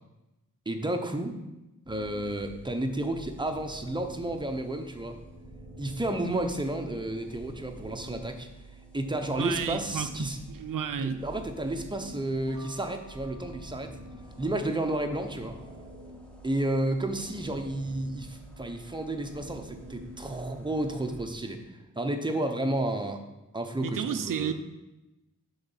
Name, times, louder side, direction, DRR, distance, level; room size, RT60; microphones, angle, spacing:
voice 1, 0.7-1.4 1.9-5.2 5.8-8.5 8.9-10.4 11.0-13.9 14.4-15.6 16.4-21.6 22.0-23.2 23.5-24.5, right 1 dB, 15° right, 5 dB, 0.9 m, -31 dB
sound 1, 1.9-21.3, right 1 dB, 5° left, 1.2 m, -47 dB
voice 2, 9.4-11.2 23.8-24.5, right 7 dB, 85° right, 9 dB, 0.7 m, -32 dB
sound 2, 12.3-15.1, right 1 dB, 20° left, 2.2 m, -54 dB
9.6 x 4.0 x 7.2 m, 0.99 s
wide cardioid pair, 145°, 32 cm